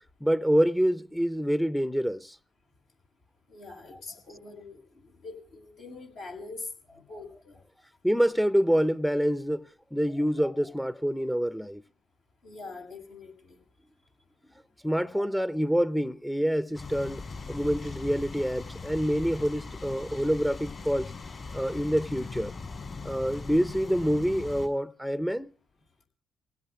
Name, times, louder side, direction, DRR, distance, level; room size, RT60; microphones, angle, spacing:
voice 1, 0.2-2.3 3.9-4.0 7.1-7.2 8.0-11.8 14.8-17.2 17.5-21.1 21.5-22.5 23.0-25.5, equal, ahead, 0.7 m, -27 dB
voice 2, 3.5-7.6 12.4-13.6, left 3 dB, 75° left, 6.6 m, -44 dB
sound 1, 16.7-24.7, left 4 dB, 45° left, 5.5 m, -40 dB
29.0 x 17.0 x 2.4 m
hypercardioid pair, 50°, 0 cm